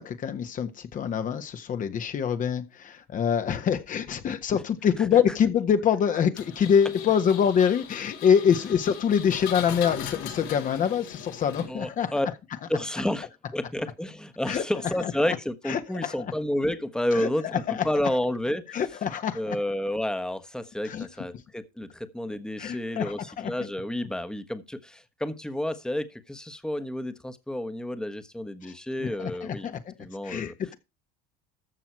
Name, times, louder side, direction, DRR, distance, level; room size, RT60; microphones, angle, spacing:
voice 1, 0.0-12.1 14.5-14.6 15.0-15.1 15.7-16.1 17.1-17.3 17.7-17.8 18.7-19.6 20.8-21.1 22.6-23.5 28.6-28.7 29.0-29.9 30.2-30.7, left 8 dB, 45° left, 1.5 m, -25 dB
Engine, 6.4-12.0, left 9 dB, 75° left, 5.5 m, -39 dB
voice 2, 11.7-12.3 12.7-18.8 19.3-29.7 30.0-30.5, left 1 dB, 5° left, 1.3 m, -30 dB
14.0 x 6.1 x 4.6 m
supercardioid pair, 105°, 19 cm